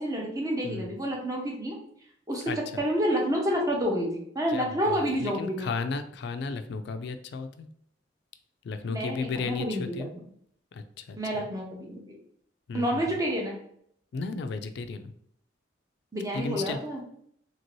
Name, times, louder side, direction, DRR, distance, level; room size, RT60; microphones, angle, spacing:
voice 1, 0.0-1.8 2.3-5.7 8.9-10.2 11.2-12.0 12.7-13.6 16.1-17.0, equal, 20° right, -1 dB, 0.6 m, -29 dB
voice 2, 2.5-2.8 4.5-7.7 8.6-10.1 10.7-11.2 12.7-13.2 14.1-15.1 16.3-16.8, left 4 dB, 60° left, 10 dB, 0.3 m, -34 dB
2.9 x 2.6 x 3.0 m, 0.67 s
head